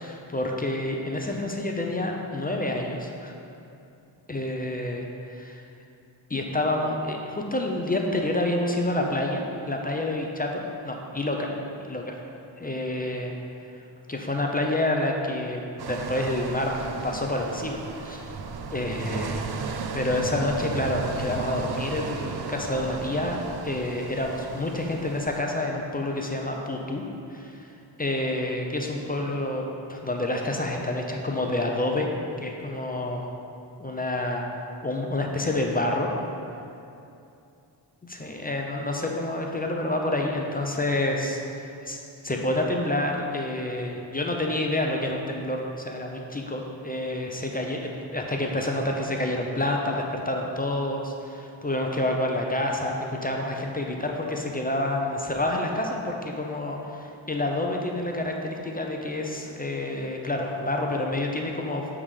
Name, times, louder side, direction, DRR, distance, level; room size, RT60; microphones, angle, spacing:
voice 1, 0.0-3.3 4.3-5.6 6.3-11.5 11.8-12.3 12.6-13.3 14.1-18.2 18.7-19.7 19.9-23.4 23.6-27.0 27.3-27.7 28.0-32.1 32.4-33.3 33.8-34.5 34.8-36.1 38.0-61.9, left 1 dB, 20° left, 1 dB, 0.6 m, -28 dB
sound 1, 15.8-25.4, right 5 dB, 55° right, 0.5 m, -35 dB
7.2 x 3.6 x 4.9 m, 2.7 s
cardioid pair, 75°, 47 cm